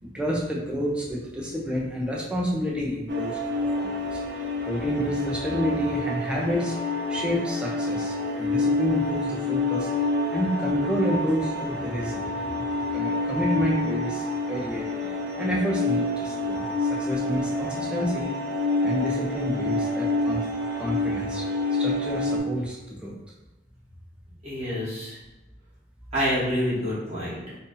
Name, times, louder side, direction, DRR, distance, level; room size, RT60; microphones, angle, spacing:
voice 1, 0.0-3.4 3.8-4.2 4.6-6.7 7.1-9.9 10.3-18.3 18.8-20.4 20.8-21.4 21.8-23.2, equal, 5° right, -4 dB, 0.6 m, -29 dB
sound 1, 3.1-22.4, left 2 dB, 60° right, 0.5 m, -28 dB
voice 2, 24.4-25.2 26.1-27.6, equal, 35° right, -10 dB, 1.2 m, -27 dB
2.7 x 2.6 x 3.8 m, 1.0 s
head